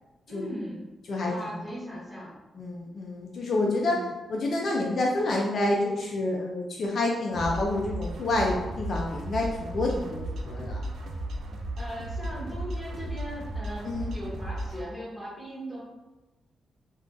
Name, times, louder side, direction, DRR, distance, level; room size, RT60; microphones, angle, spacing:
voice 1, 0.3-0.9 1.2-2.3 3.8-4.1 11.8-15.8, equal, 5° right, -8 dB, 1.1 m, -38 dB
voice 2, 2.6-4.0 4.3-10.8 13.8-14.1, left 2 dB, 45° left, -2 dB, 0.3 m, -28 dB
sound 1, 7.3-14.8, right 1 dB, 70° right, 0.4 m, -35 dB
2.5 x 2.2 x 3.8 m, 1.1 s
wide cardioid pair, 170°, 0 cm